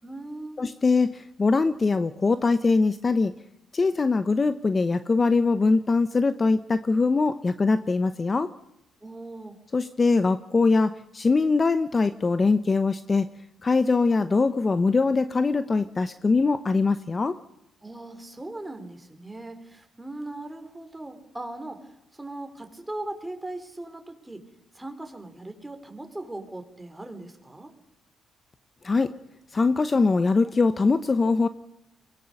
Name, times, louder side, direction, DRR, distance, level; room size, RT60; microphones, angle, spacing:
voice 1, 0.0-0.6 9.0-9.6 17.8-24.4 24.7-27.7, right 2 dB, 10° right, 6 dB, 3.7 m, -39 dB
voice 2, 0.6-3.3 3.7-8.5 9.7-13.3 13.6-17.4 28.8-29.1 29.5-31.5, left 4 dB, 30° left, 12 dB, 0.8 m, -22 dB
23.0 x 19.5 x 6.6 m, 0.87 s
cardioid pair, 90°, 0 cm